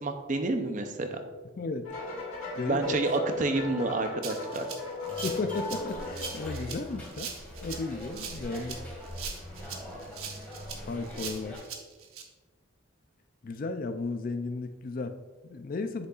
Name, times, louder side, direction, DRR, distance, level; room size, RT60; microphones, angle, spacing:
voice 1, 0.0-1.2 2.6-4.7, right 2 dB, 35° right, 6 dB, 0.6 m, -29 dB
voice 2, 1.6-1.9 2.5-3.0 5.2-7.3 7.6-8.8 10.9-11.6 13.4-16.1, left 3 dB, 40° left, 9 dB, 0.4 m, -34 dB
sound 1, 1.8-6.9, left 1 dB, 70° left, 1.6 m, -37 dB
Rattle (instrument), 4.2-12.2, right 7 dB, 90° right, 0.9 m, -41 dB
sound 2, 5.1-11.6, equal, 5° left, 2.0 m, -42 dB
7.9 x 6.5 x 2.4 m, 1.3 s
head